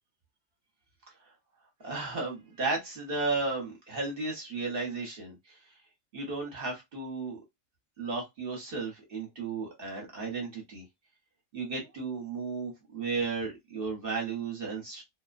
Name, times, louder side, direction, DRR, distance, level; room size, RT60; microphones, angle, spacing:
voice 1, 1.8-5.6 6.1-7.4 8.0-10.8 11.5-15.0, right 3 dB, 45° right, 0.9 m, -34 dB
2.4 x 2.1 x 2.4 m
omnidirectional pair, 1.5 m